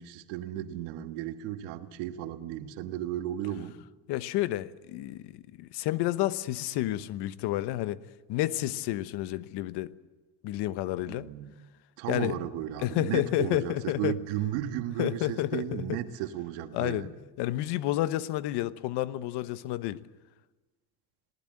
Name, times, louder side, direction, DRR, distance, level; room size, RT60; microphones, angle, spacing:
voice 1, 0.0-3.8 11.0-11.5 12.0-17.1, right 11 dB, 90° right, 8 dB, 1.6 m, -34 dB
voice 2, 4.1-8.0 8.3-9.9 10.4-11.3 12.1-12.4 12.8-14.1 15.0-16.0 16.7-17.1 17.4-20.0, left 15 dB, 75° left, 15 dB, 1.1 m, -30 dB
27.0 x 18.5 x 7.7 m, 1.2 s
supercardioid pair, 95°, 41 cm